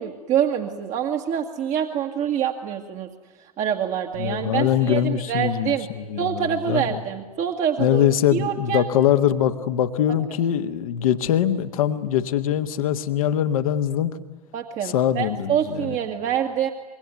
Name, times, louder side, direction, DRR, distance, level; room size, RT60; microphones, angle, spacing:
voice 1, 0.0-3.1 3.4-5.9 6.2-8.1 8.3-8.9 14.5-16.7, right 9 dB, 40° right, 3 dB, 1.8 m, -26 dB
voice 2, 4.2-7.0 7.8-14.1 14.9-16.0, left 10 dB, 60° left, 9 dB, 1.6 m, -22 dB
25.5 x 22.5 x 9.5 m, 1.2 s
figure-of-eight pair, 80°, 20 cm